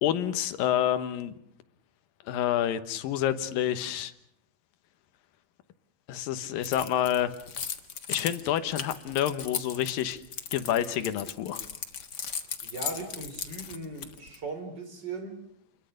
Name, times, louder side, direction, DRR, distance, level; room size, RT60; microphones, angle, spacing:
voice 1, 0.0-1.3 2.3-4.1 6.1-7.3 8.1-10.2 10.5-11.6, left 11 dB, 70° left, 2.8 m, -28 dB
Keys jangling, 6.6-14.4, left 7 dB, 85° left, 0.9 m, -37 dB
voice 2, 12.6-15.4, right 3 dB, 30° right, 4.0 m, -38 dB
29.5 x 22.5 x 6.6 m
omnidirectional pair, 4.4 m